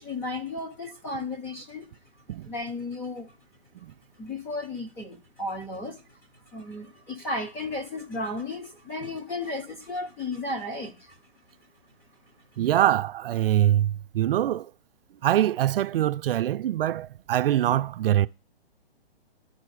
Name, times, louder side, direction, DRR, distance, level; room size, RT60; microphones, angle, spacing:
voice 1, 0.0-1.9 2.3-3.3 4.2-11.2, left 2 dB, 10° left, 0.4 m, -34 dB
voice 2, 12.6-14.7 15.2-18.3, right 12 dB, 65° right, 0.4 m, -24 dB
10.5 x 4.3 x 4.7 m
hypercardioid pair, 145°, 31 cm